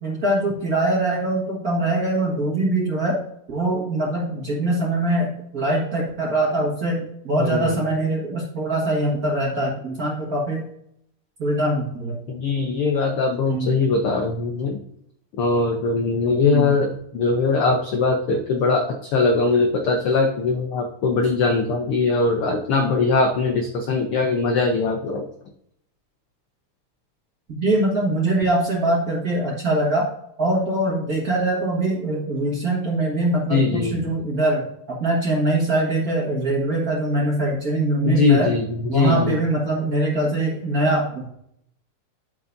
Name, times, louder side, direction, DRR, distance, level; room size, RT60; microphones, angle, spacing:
voice 1, 0.0-3.2 3.5-10.6 11.4-12.2 13.5-13.8 16.4-16.8 27.6-30.1 30.4-38.5 38.9-41.3, right 1 dB, 40° right, -4 dB, 1.3 m, -23 dB
voice 2, 7.4-7.8 12.3-14.8 15.4-25.2 33.5-33.9 38.1-39.4, left 4 dB, 85° left, 3 dB, 1.2 m, -21 dB
12.5 x 4.6 x 2.6 m, 0.73 s
omnidirectional pair, 3.5 m